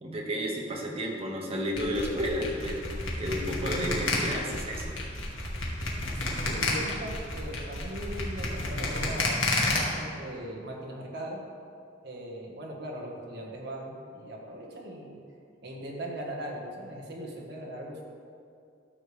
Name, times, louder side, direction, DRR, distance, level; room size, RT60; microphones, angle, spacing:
voice 1, 0.0-2.9 3.2-5.0, equal, 30° right, -1 dB, 1.3 m, -32 dB
sound 1, 1.8-9.8, left 2 dB, 90° left, 1.8 m, -30 dB
voice 2, 6.1-11.4 12.0-15.2 15.6-18.0, right 1 dB, 65° right, -1 dB, 1.4 m, -39 dB
13.0 x 6.9 x 3.3 m, 2.4 s
head